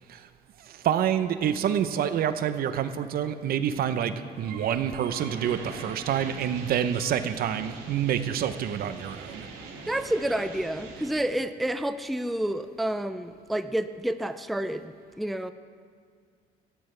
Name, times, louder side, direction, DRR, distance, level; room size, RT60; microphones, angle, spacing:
voice 1, 0.6-9.5, right 9 dB, 65° right, 11 dB, 0.8 m, -27 dB
sound 1, 4.3-11.1, right 4 dB, 85° right, 2.6 m, -42 dB
voice 2, 9.9-15.5, right 1 dB, ahead, 10 dB, 0.4 m, -29 dB
18.5 x 15.0 x 3.4 m, 2.1 s
cardioid pair, 110°, 17 cm